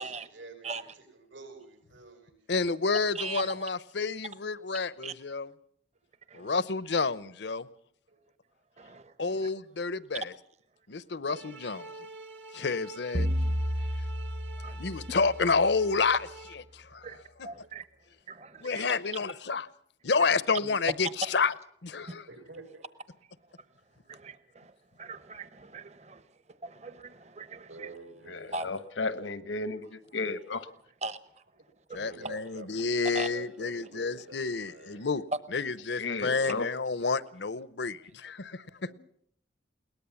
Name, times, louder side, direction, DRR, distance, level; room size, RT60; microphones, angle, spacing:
voice 1, 0.0-2.5 7.7-8.2 11.3-11.4 17.6-17.7 20.6-20.7 22.1-22.8 26.1-26.2 27.7-28.7 31.9-32.8 33.1-35.1 38.9-39.0, right 2 dB, 85° right, 6.8 m, -49 dB
voice 2, 2.5-5.5 6.3-7.7 9.2-10.3 10.9-11.8 12.5-13.3 14.8-16.3 16.5-17.1 17.4-17.5 18.6-19.7 20.0-21.5 21.8-22.3 31.9-35.2 35.5-38.9, left 4 dB, 65° left, 0.8 m, -29 dB
voice 3, 3.1-3.6 5.0-5.1 6.3-6.5 8.8-9.5 12.6-12.7 14.6-14.8 17.0-17.2 17.4-17.8 18.3-18.8 24.1-24.7 25.0-26.2 26.6-27.7 28.5-28.7 31.0-31.2 33.1-33.3, right 3 dB, 35° right, 0.9 m, -40 dB
sound 1, 11.3-16.5, right 2 dB, 70° right, 2.1 m, -48 dB
sound 2, 13.1-15.9, equal, 50° right, 1.3 m, -32 dB
voice 4, 28.3-30.7 36.0-36.7, left 3 dB, 85° left, 1.2 m, -34 dB
21.5 x 19.0 x 7.1 m
head